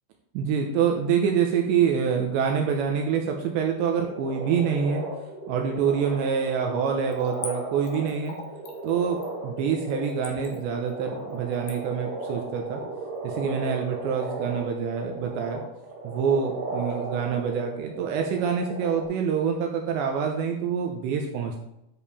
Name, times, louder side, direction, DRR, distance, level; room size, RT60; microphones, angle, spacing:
voice 1, 0.3-5.0 5.5-8.4 8.8-12.8 13.2-15.6 16.0-21.6, right 7 dB, 80° right, 2 dB, 2.8 m, -26 dB
sound 1, 3.9-19.0, right 2 dB, 45° right, 4.1 m, -36 dB
Splash splatter / Trickle dribble, 7.1-13.5 13.8-13.9, left 5 dB, 65° left, 2.3 m, -43 dB
10.5 x 7.1 x 4.3 m, 0.83 s
omnidirectional pair, 5.9 m